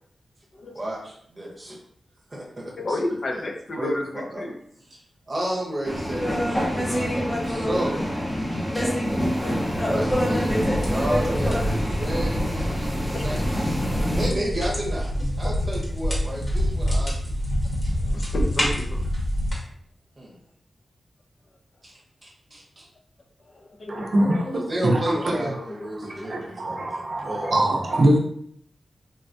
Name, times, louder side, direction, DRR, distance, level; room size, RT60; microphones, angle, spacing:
voice 1, 0.7-1.8 2.3-3.0 3.3-3.5 3.8-4.4 4.9-5.0 5.3-8.0 9.9-17.1 20.2-20.4 21.8-21.9 22.2-22.8 24.7-27.6, right 1 dB, 25° right, -3 dB, 0.8 m, -32 dB
voice 2, 2.8-4.6 9.4-9.6 12.0-12.3 13.1-13.3 14.0-14.1 14.4-14.5 15.4-15.5 18.0-19.0 23.5-24.6 25.3-26.3, left 2 dB, 50° left, 1 dB, 0.4 m, -32 dB
sound 1, 5.8-14.3, equal, 10° left, 0.6 m, -25 dB
sound 2, 10.6-19.6, equal, 35° left, 0.9 m, -27 dB
voice 3, 23.9-28.2, right 1 dB, 55° right, -1 dB, 0.5 m, -24 dB
3.3 x 2.2 x 2.5 m, 0.65 s
wide cardioid pair, 165°, 0 cm